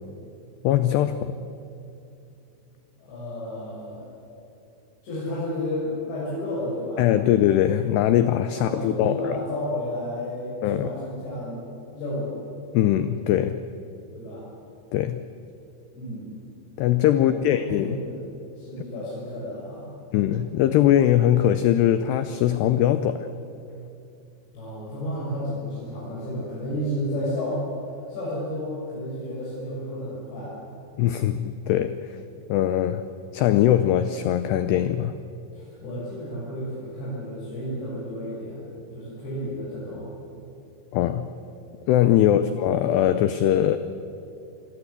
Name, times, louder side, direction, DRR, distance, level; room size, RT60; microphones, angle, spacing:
voice 1, 0.6-1.4 7.0-9.4 10.6-10.9 12.7-13.6 14.9-15.2 16.8-18.0 20.1-23.3 31.0-32.1 32.5-33.0 33.3-35.2 40.9-41.3 41.9-43.8, left 11 dB, 90° left, 11 dB, 2.3 m, -21 dB
voice 2, 3.0-4.1 5.0-7.1 8.5-12.4 14.1-14.5 15.9-16.4 17.1-18.2 18.6-19.9 24.5-27.6 28.1-30.6 35.5-38.7 38.9-40.1, left 1 dB, 60° left, -8 dB, 8.9 m, -32 dB
27.5 x 21.0 x 8.2 m, 2.7 s
omnidirectional pair, 5.8 m